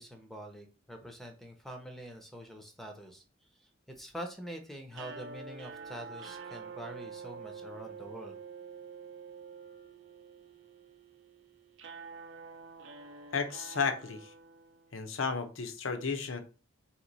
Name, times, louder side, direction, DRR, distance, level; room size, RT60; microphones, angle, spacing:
voice 1, 0.0-3.2 4.0-8.4, equal, ahead, 0.5 m, -45 dB
sound 1, 4.9-15.1, right 5 dB, 65° right, 0.6 m, -47 dB
voice 2, 13.3-14.3 14.9-16.4, left 5 dB, 75° left, 0.7 m, -33 dB
4.0 x 3.0 x 3.9 m
head